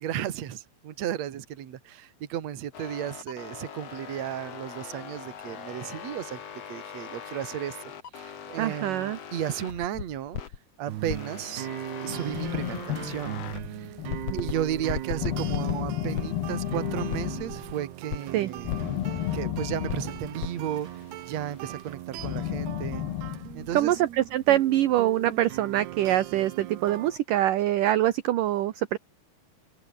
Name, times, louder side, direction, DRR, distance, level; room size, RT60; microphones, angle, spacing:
voice 1, 0.0-10.4 10.8-11.7 12.0-13.4 13.7-13.9 14.3-18.8 19.3-20.9 21.3-23.1 23.5-24.0, right 10 dB, 50° right, 2.6 m, -34 dB
sound 1, 2.7-10.6 11.1-13.7 14.1-17.7 18.1-19.5 19.9-21.9, left 8 dB, 45° left, 2.8 m, -40 dB
voice 2, 8.6-9.2 18.3-18.5 23.7-29.0, right 13 dB, 65° right, 2.5 m, -24 dB
sound 2, 10.9-27.2, right 13 dB, 85° right, 3.5 m, -39 dB
sound 3, 12.1-14.5 15.2-17.8 18.7-20.7 22.2-23.9, left 15 dB, 85° left, 3.2 m, -33 dB
omnidirectional pair, 4.5 m